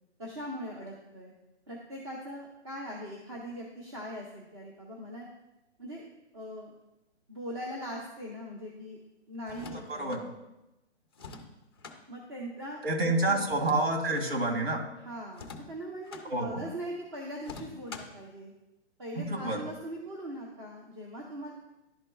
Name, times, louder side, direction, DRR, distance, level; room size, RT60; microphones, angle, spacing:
voice 1, 0.2-1.3 1.7-5.3 5.8-6.0 6.3-6.7 7.3-9.0 9.3-10.1 12.1-12.8 13.3-13.5 15.0-18.5 19.0-21.5, equal, 25° right, -2 dB, 0.7 m, -41 dB
sound 1, 9.4-10.2 11.1-12.0 13.4-14.3 15.3-16.3 17.4-18.2, left 4 dB, 25° left, 0.4 m, -46 dB
voice 2, 9.9-10.2 12.8-14.8 16.3-16.6 19.2-19.6, right 2 dB, 60° right, 2 dB, 2.1 m, -28 dB
11.5 x 4.3 x 2.3 m, 0.95 s
hypercardioid pair, 165°, 35 cm